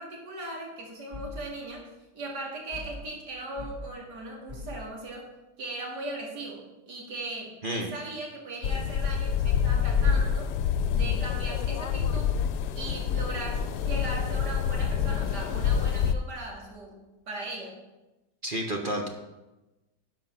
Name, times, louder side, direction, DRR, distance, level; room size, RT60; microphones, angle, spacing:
voice 1, 0.0-5.3 5.6-10.5 10.9-12.3 12.8-17.0 17.3-17.8, right 2 dB, 75° right, -1 dB, 2.7 m, -38 dB
sound 1, 1.1-1.4 2.7-3.0 3.6-3.8 4.5-4.8, left 2 dB, 20° right, 3.0 m, -40 dB
sound 2, 8.6-16.1, left 7 dB, 80° left, 1.1 m, -27 dB
voice 2, 18.4-19.1, right 1 dB, 40° right, 2 dB, 0.9 m, -30 dB
11.0 x 5.6 x 5.7 m, 1.0 s
omnidirectional pair, 1.8 m